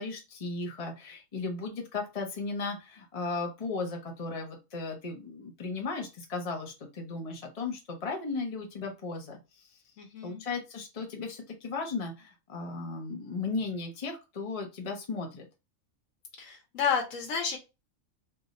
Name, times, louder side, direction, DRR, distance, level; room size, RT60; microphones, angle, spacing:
voice 1, 0.0-9.7 10.2-15.5, left 3 dB, 30° left, 1 dB, 0.9 m, -36 dB
voice 2, 10.0-10.4 16.4-17.6, left 6 dB, 75° left, 2 dB, 1.2 m, -31 dB
3.4 x 2.7 x 4.0 m, 0.26 s
omnidirectional pair, 1.4 m